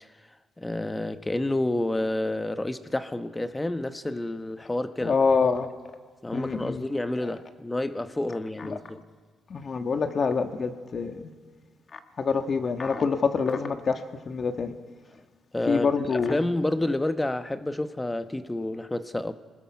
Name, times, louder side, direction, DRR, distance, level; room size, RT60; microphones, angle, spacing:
voice 1, 0.6-5.2 6.2-9.0 15.5-15.9 16.3-19.3, left 1 dB, 15° left, 1.1 m, -29 dB
voice 2, 5.0-5.7 6.3-6.9 7.2-7.3 8.6-8.8 9.5-11.2 11.9-14.7 15.6-16.4, left 5 dB, 45° left, 1.4 m, -26 dB
25.5 x 20.0 x 6.0 m
cardioid pair, 90°, 0 cm